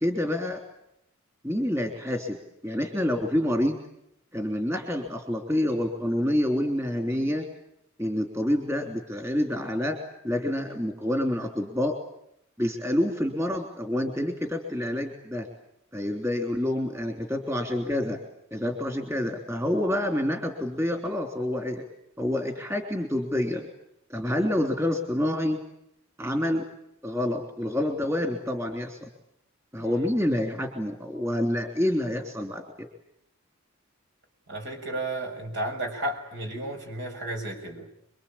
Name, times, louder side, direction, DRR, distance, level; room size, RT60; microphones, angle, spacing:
voice 1, 0.0-0.6 1.4-2.4 2.6-3.8 4.3-7.5 8.0-10.0 10.2-11.9 12.6-15.5 15.9-18.2 18.5-21.8 22.2-23.7 24.1-25.6 26.2-26.6 27.0-29.1 29.7-32.6, left 1 dB, 15° right, 4 dB, 3.2 m, -27 dB
voice 2, 34.5-37.8, right 1 dB, 65° right, 4 dB, 6.5 m, -33 dB
28.5 x 23.0 x 8.7 m, 0.77 s
head